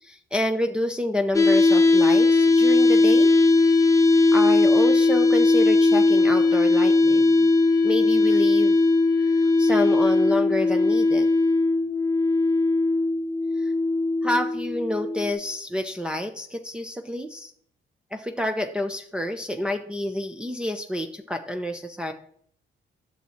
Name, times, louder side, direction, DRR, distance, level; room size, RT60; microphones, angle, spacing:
voice 1, 0.0-3.3 4.3-7.3 7.8-8.8 9.2-11.3 13.6-13.7 14.2-17.5 18.1-22.1, left 1 dB, 5° right, 3 dB, 0.8 m, -28 dB
sound 1, 1.3-15.3, left 3 dB, 15° left, 1.0 m, -19 dB
10.0 x 7.0 x 4.4 m, 0.63 s
cardioid pair, 90°, 20 cm